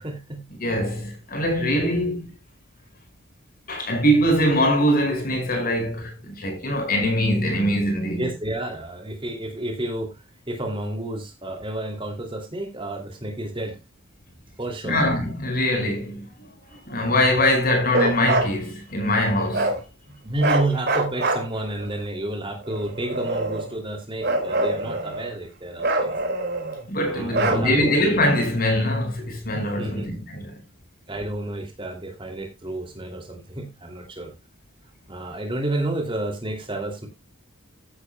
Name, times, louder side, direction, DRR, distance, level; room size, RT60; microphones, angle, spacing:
voice 1, 0.0-0.4 1.8-1.9 8.2-13.8 14.6-15.2 20.1-26.1 27.0-27.9 29.5-30.1 31.1-34.3 35.1-37.1, right 1 dB, 25° right, 2.5 m, -30 dB
voice 2, 0.6-2.3 3.7-8.3 14.8-16.5 16.9-19.8 26.9-30.6, equal, 40° left, 5.3 m, -22 dB
Bark, 17.9-18.5 19.5-19.8 20.4-21.8 22.6-23.7 24.2-25.3 25.8-26.8 27.3-28.0, right 2 dB, 50° right, 3.6 m, -25 dB
15.0 x 10.0 x 2.2 m
head